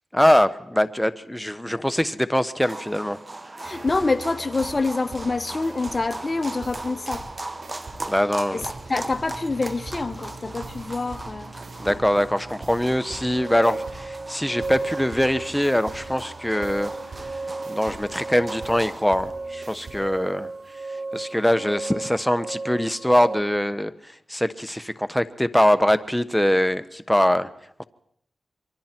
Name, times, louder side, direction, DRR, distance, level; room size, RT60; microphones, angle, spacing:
voice 1, 0.1-3.2 8.1-8.7 11.8-16.9 17.7-20.5 21.1-23.9 24.3-27.5 27.8-27.9, equal, 5° left, 12 dB, 1.1 m, -22 dB
sound 1, 2.6-19.1, right 2 dB, 30° right, 1.2 m, -39 dB
voice 2, 3.6-7.3 8.5-8.6 8.9-11.5, left 3 dB, 40° left, 12 dB, 1.0 m, -26 dB
sound 2, 3.6-21.6, right 3 dB, 75° right, 4.8 m, -43 dB
sound 3, 13.1-23.4, right 3 dB, 55° right, 1.8 m, -35 dB
28.0 x 23.0 x 4.5 m, 0.66 s
cardioid pair, 55°, 0 cm